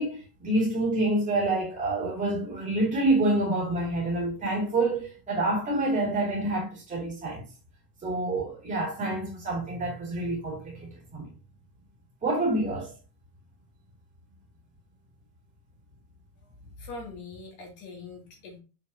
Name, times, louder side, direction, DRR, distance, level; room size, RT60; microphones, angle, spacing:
voice 1, 0.0-7.4 8.0-11.3 12.2-12.9, right 2 dB, 15° right, 2.3 m, -27 dB
voice 2, 16.8-18.6, left 3 dB, 35° left, 2.2 m, -42 dB
6.7 x 5.3 x 2.7 m
cardioid pair, 180°, 50 cm